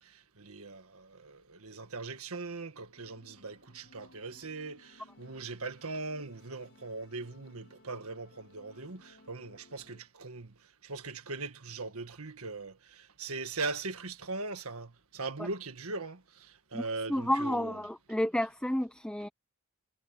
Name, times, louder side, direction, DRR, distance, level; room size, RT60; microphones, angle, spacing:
voice 1, 0.0-10.5 10.8-17.8, right 3 dB, 70° right, 1.8 m, -40 dB
sound 1, 2.9-10.0, left 2 dB, 55° left, 6.5 m, -60 dB
voice 2, 17.1-19.3, left 1 dB, 5° left, 0.5 m, -31 dB
head